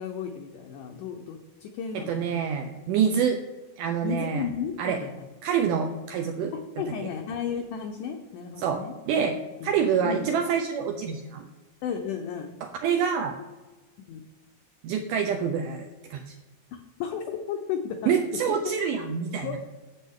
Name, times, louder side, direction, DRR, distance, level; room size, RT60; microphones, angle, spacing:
voice 1, 0.0-2.5 4.0-5.1 6.5-9.2 9.6-9.7 10.0-10.3 11.8-12.5 14.1-14.2 16.7-18.1 18.5-18.6 19.4-19.6, left 7 dB, 80° left, 4 dB, 1.8 m, -34 dB
voice 2, 1.9-3.4 3.8-4.4 4.8-5.0 5.4-6.5 8.6-11.4 12.6-13.4 14.8-16.4 18.1-19.6, right 7 dB, 90° right, 5 dB, 1.8 m, -27 dB
9.7 x 7.6 x 3.6 m, 1.2 s
omnidirectional pair, 4.3 m